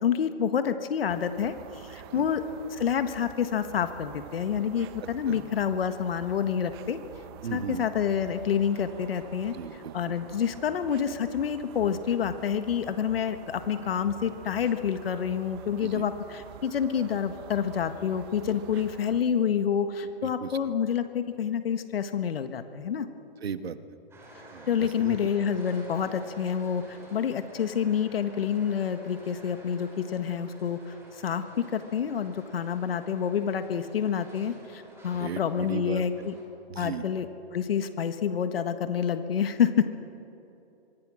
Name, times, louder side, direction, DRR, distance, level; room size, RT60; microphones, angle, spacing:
voice 1, 0.0-2.4 2.7-7.0 7.5-9.6 9.9-23.1 24.7-31.4 31.7-36.3 36.8-37.3 37.5-39.9, left 8 dB, 70° left, 9 dB, 1.6 m, -28 dB
sound 1, 1.1-19.2, right 10 dB, 25° right, 0.8 m, -47 dB
voice 2, 7.4-7.9 9.5-10.1 15.8-16.0 20.2-20.6 23.4-23.8 24.5-25.2 35.1-36.3 36.7-37.0, right 7 dB, 80° right, 11 dB, 1.5 m, -36 dB
sound 2, 24.1-36.4, right 1 dB, 10° right, 4.1 m, -51 dB
24.0 x 24.0 x 6.4 m, 3.0 s
hypercardioid pair, 160°, 30 cm